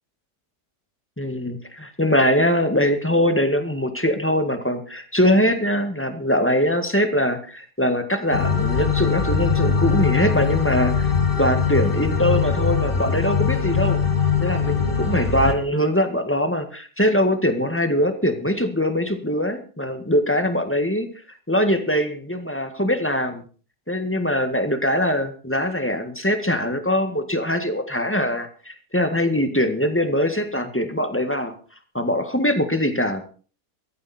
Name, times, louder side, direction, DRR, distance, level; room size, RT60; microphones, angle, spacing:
voice 1, 1.2-11.1 11.4-14.0 14.4-21.1 21.5-23.4 23.9-31.5 31.9-33.3, equal, 10° left, 7 dB, 1.6 m, -22 dB
sound 1, 8.3-15.5, left 5 dB, 35° left, 1.9 m, -21 dB
16.0 x 14.0 x 4.3 m, 0.39 s
omnidirectional pair, 1.7 m